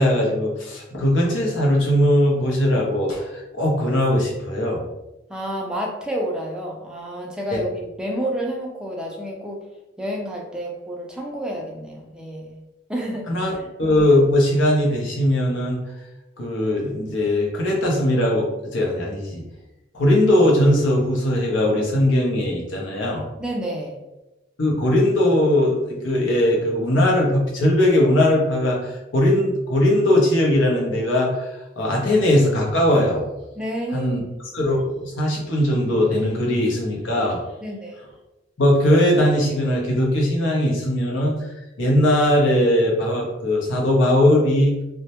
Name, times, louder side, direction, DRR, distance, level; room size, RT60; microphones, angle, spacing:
voice 1, 0.0-4.8 7.5-7.6 13.3-13.5 13.8-15.8 16.4-19.4 19.9-23.2 24.6-31.5 31.8-33.3 33.9-34.2 34.5-37.4 38.6-41.3 41.8-44.8, left 1 dB, 80° left, -2 dB, 0.7 m, -19 dB
voice 2, 5.3-9.6 10.0-12.6 12.9-13.3 13.5-13.7 23.4-24.0 33.6-34.1 37.6-37.9, equal, 5° right, -1 dB, 0.3 m, -29 dB
2.1 x 2.0 x 2.8 m, 0.98 s
head